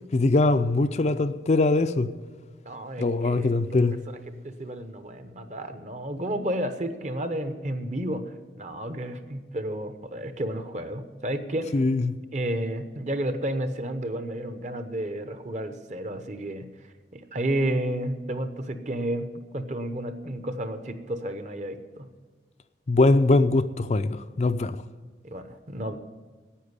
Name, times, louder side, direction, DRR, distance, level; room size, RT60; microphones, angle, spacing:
voice 1, 0.1-2.1 3.0-3.9 11.7-12.2 22.9-24.8, left 2 dB, 40° left, 0.4 m, -22 dB
voice 2, 2.6-3.8 4.1-4.2 4.4-11.8 12.3-22.1 25.2-26.0, right 1 dB, 40° right, 0.9 m, -32 dB
10.0 x 8.9 x 9.7 m
head